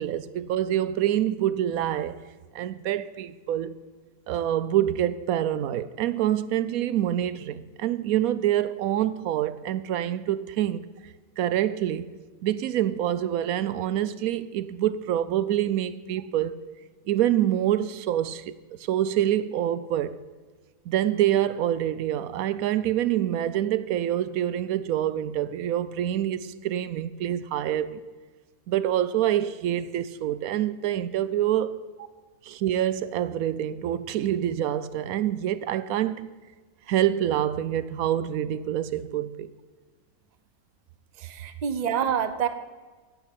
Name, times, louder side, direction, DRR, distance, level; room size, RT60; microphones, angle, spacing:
voice 1, 0.0-2.2 2.5-3.8 4.3-10.8 11.4-12.1 12.4-16.6 17.1-18.5 18.9-20.2 20.9-28.0 28.7-31.9 32.4-36.3 36.9-39.5, right 11 dB, 80° right, 1.0 m, -26 dB
voice 2, 41.2-42.5, right 8 dB, 40° right, 0.7 m, -27 dB
10.0 x 9.7 x 8.4 m
omnidirectional pair, 1.5 m